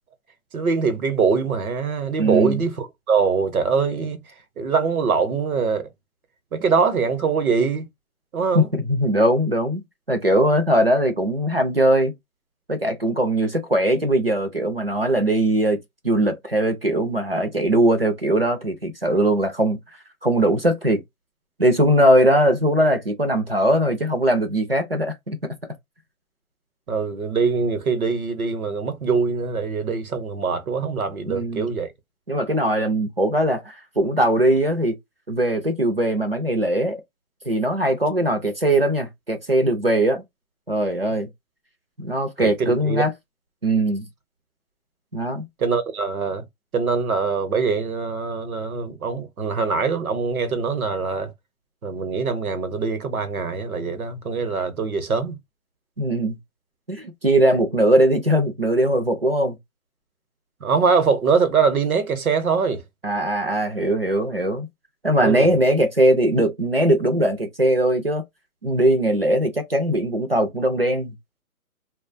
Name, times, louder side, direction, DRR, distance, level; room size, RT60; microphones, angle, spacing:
voice 1, 0.5-4.2 4.6-5.9 6.5-7.8 8.3-8.7 26.9-31.9 42.4-43.0 45.6-46.4 46.7-51.3 51.8-55.4 60.6-62.8 65.2-65.5, right 5 dB, 75° right, 0.9 m, -23 dB
voice 2, 2.2-2.6 8.5-12.1 12.7-15.8 16.0-19.8 20.2-21.0 21.6-25.4 31.3-31.7 32.3-34.9 35.3-37.0 37.5-40.2 40.7-41.3 42.0-43.1 43.6-44.0 45.1-45.4 56.0-56.4 56.9-59.6 63.0-64.7 65.0-68.2 68.6-71.1, right 1 dB, 45° right, 0.4 m, -20 dB
2.4 x 2.2 x 2.5 m
hypercardioid pair, 175°, 43 cm